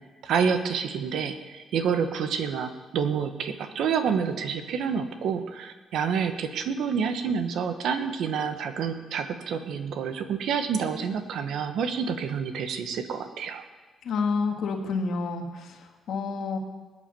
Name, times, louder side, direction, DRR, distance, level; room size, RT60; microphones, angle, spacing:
voice 1, 0.2-13.6, right 6 dB, 65° right, 8 dB, 1.3 m, -28 dB
voice 2, 14.0-15.8 16.1-16.6, left 4 dB, 60° left, 3 dB, 2.0 m, -28 dB
20.5 x 8.7 x 6.9 m, 1.3 s
cardioid pair, 180°, 0 cm